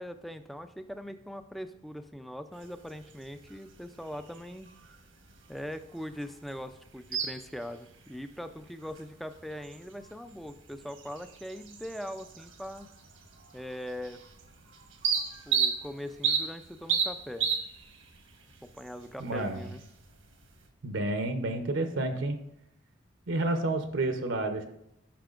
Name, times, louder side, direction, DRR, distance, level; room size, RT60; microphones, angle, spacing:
voice 1, 0.0-4.7 5.5-12.9 13.5-14.2 15.5-17.5 18.6-19.8, equal, ahead, 8 dB, 0.3 m, -41 dB
sound 1, 2.5-20.7, right 6 dB, 85° right, 1.2 m, -37 dB
voice 2, 19.2-19.6 20.8-22.4 23.3-24.6, right 2 dB, 70° right, 6 dB, 0.7 m, -30 dB
10.0 x 5.9 x 2.4 m, 0.79 s
head